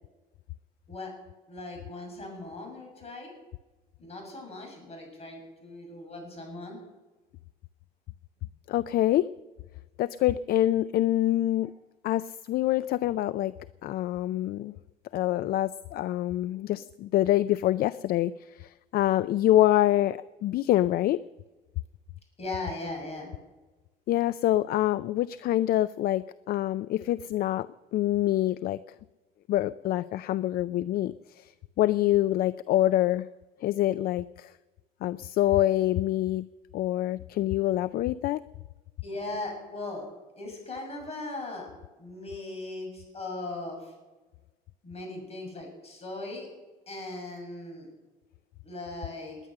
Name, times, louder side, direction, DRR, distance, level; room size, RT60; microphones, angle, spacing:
voice 1, 1.5-3.4 4.0-6.8 22.4-23.3 39.0-40.1 40.4-41.7 42.0-43.8 44.8-46.5 46.9-47.9 48.6-49.4, left 2 dB, 40° left, 2 dB, 6.9 m, -38 dB
voice 2, 8.7-9.3 10.0-11.7 12.0-13.5 13.8-14.7 15.1-21.2 24.1-28.8 29.5-31.5 31.8-33.3 33.6-34.5 35.0-36.5 36.7-38.4, left 14 dB, 65° left, 16 dB, 0.4 m, -26 dB
20.5 x 10.0 x 6.6 m, 1.2 s
cardioid pair, 110°, 17 cm